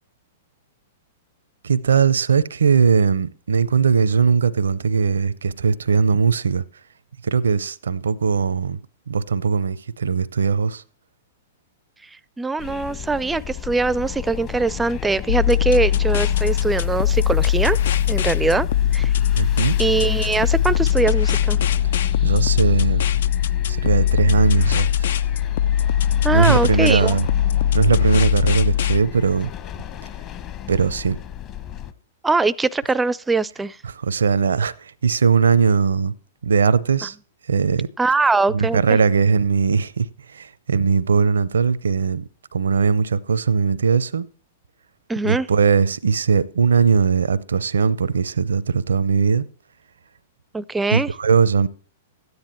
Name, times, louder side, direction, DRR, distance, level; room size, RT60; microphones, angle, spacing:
voice 1, 1.6-6.6 7.2-8.8 9.1-10.8 19.4-19.8 22.2-23.1 23.7-25.1 26.3-27.3 27.7-29.5 30.7-31.2 33.8-36.1 36.4-37.2 37.5-37.9 38.5-44.3 45.2-49.5 50.9-51.7, right 5 dB, 75° right, 0.7 m, -19 dB
voice 2, 12.1-17.8 18.1-18.7 18.9-19.1 19.8-21.6 26.2-27.2 32.2-33.8 38.0-39.0 45.1-45.5 50.5-51.1, right 3 dB, 10° right, 0.5 m, -22 dB
sound 1, 12.6-31.9, left 11 dB, 35° left, 1.1 m, -34 dB
sound 2, 15.3-29.0, left 10 dB, 60° left, 0.4 m, -20 dB
13.0 x 9.6 x 4.4 m
figure-of-eight pair, 110°, 0 cm